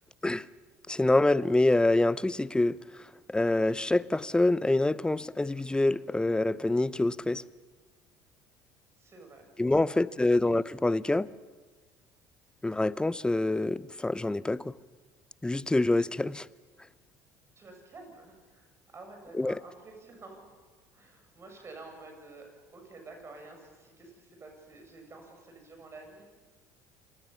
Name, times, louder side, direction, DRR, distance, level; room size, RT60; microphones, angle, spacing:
voice 1, 0.9-2.8 3.3-7.4 9.6-11.3 12.6-14.7 15.4-16.5 19.4-19.6, left 2 dB, 10° left, 0.7 m, -26 dB
voice 2, 9.0-9.5 9.8-10.3 17.6-20.6 20.9-26.2, right 3 dB, 30° right, 7.5 m, -50 dB
27.5 x 19.0 x 7.1 m
hypercardioid pair, 70°, 8 cm